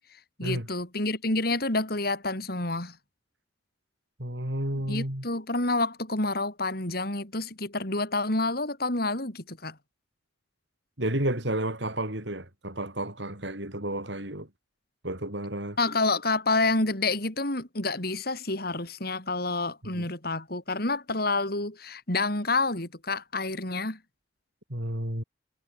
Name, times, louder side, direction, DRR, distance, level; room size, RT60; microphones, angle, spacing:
voice 1, 0.4-3.0 4.8-9.8 15.8-24.0, left 2 dB, 55° left, 4.9 m, -28 dB
voice 2, 4.2-5.3 11.0-14.5 15.0-15.8 19.9-20.1 24.7-25.2, right 1 dB, 70° right, 7.3 m, -31 dB
head